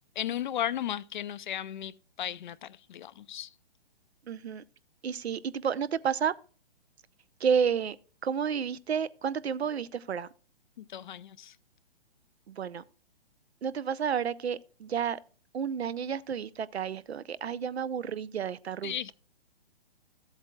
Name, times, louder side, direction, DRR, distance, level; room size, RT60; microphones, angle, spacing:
voice 1, 0.2-3.5 10.8-11.6 18.8-19.1, left 11 dB, 50° left, 0.4 m, -35 dB
voice 2, 4.3-4.6 5.0-6.3 7.4-8.0 8.2-10.3 12.5-12.8 13.6-15.2 15.5-19.1, right 7 dB, 80° right, 0.7 m, -31 dB
13.5 x 8.0 x 2.3 m
hypercardioid pair, 135°, 32 cm